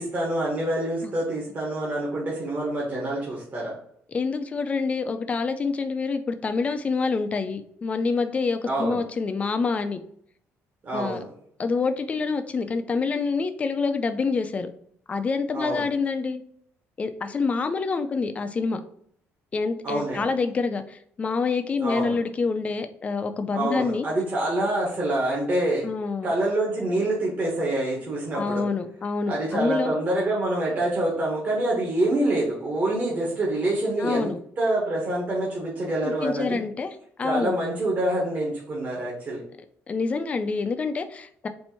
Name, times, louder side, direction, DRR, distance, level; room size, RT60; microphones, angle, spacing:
voice 1, 0.0-3.8 8.6-9.0 10.8-11.3 15.5-15.9 19.8-20.3 21.8-22.2 23.5-25.9 26.2-28.7 29.3-36.6 37.2-39.4, right 1 dB, 35° right, -4 dB, 1.2 m, -26 dB
voice 2, 4.1-10.0 10.9-11.2 11.6-14.7 15.1-16.4 17.0-18.8 19.5-24.1 25.8-26.3 28.3-29.9 34.0-34.3 36.0-37.5 39.9-41.5, left 4 dB, 25° left, 8 dB, 0.4 m, -27 dB
4.4 x 2.6 x 4.3 m, 0.66 s
cardioid pair, 140°, 5 cm